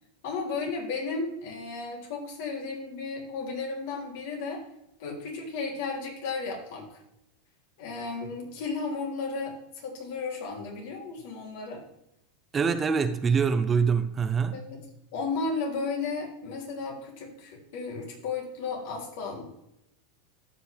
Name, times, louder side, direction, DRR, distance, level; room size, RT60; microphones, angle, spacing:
voice 1, 0.2-4.6 5.0-7.0 7.8-11.8 14.5-14.8 15.1-19.5, left 4 dB, 65° left, 3.2 m, -34 dB
voice 2, 12.5-14.6, right 6 dB, 20° right, 0.5 m, -24 dB
13.5 x 5.7 x 3.4 m
supercardioid pair, 125°, 0 cm